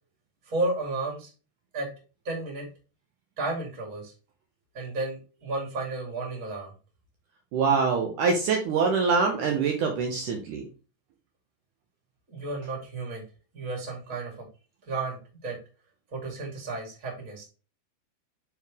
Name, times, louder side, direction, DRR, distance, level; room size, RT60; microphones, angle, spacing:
voice 1, 0.4-1.3 1.7-1.9 2.2-2.7 3.4-4.1 4.7-6.7 12.3-13.2 13.5-14.5 14.9-15.6 16.1-17.4, right 2 dB, 25° right, -1 dB, 2.2 m, -32 dB
voice 2, 7.5-10.7, right 5 dB, 85° right, 2 dB, 1.7 m, -24 dB
6.5 x 4.6 x 3.5 m, 0.34 s
omnidirectional pair, 4.9 m